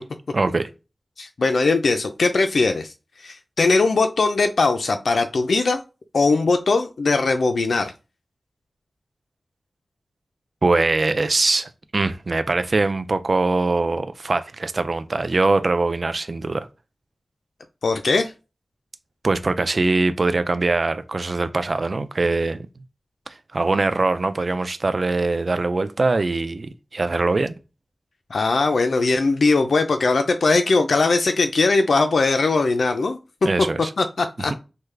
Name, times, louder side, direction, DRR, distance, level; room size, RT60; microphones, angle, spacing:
voice 1, 0.3-0.7 10.6-16.7 19.2-22.7 23.3-27.6 33.5-33.9 34.4-34.5, right 3 dB, 50° right, 0.3 m, -22 dB
voice 2, 1.2-2.9 3.2-5.8 6.1-7.9 17.8-18.3 28.3-33.2 34.0-34.5, left 3 dB, 80° left, 0.3 m, -20 dB
3.5 x 2.2 x 3.2 m
wide cardioid pair, 95°, 0 cm